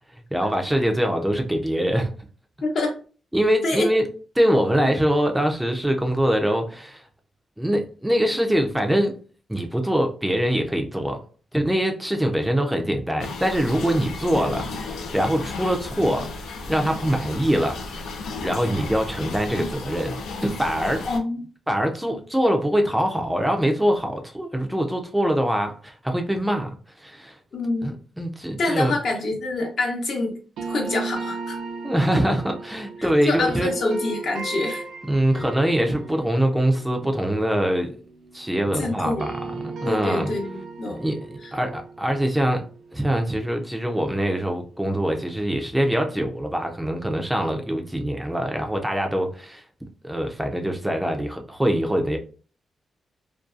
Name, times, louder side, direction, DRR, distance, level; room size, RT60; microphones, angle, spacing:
voice 1, 0.3-2.1 3.3-4.1 4.4-7.0 7.6-9.1 9.5-11.2 11.5-16.3 16.7-17.8 18.4-21.1 21.7-26.7 27.0-27.4 27.8-28.9 31.8-33.7 35.1-37.9 38.3-39.3 39.8-40.3 41.0-42.6 42.9-49.6 50.0-52.2, equal, 5° right, 0.4 m, -23 dB
voice 2, 2.6-2.9 3.6-3.9 4.7-4.9 21.1-21.4 27.5-27.9 28.6-30.4 30.7-31.6 33.0-34.8 38.8-39.2 39.8-41.0 41.4-41.5, left 2 dB, 60° left, 0.7 m, -26 dB
sound 1, 13.2-21.2, left 3 dB, 90° left, 0.4 m, -34 dB
sound 2, 30.6-38.6 38.9-43.9, right 3 dB, 85° right, 0.4 m, -36 dB
2.5 x 2.3 x 2.3 m
cardioid pair, 105°, 0 cm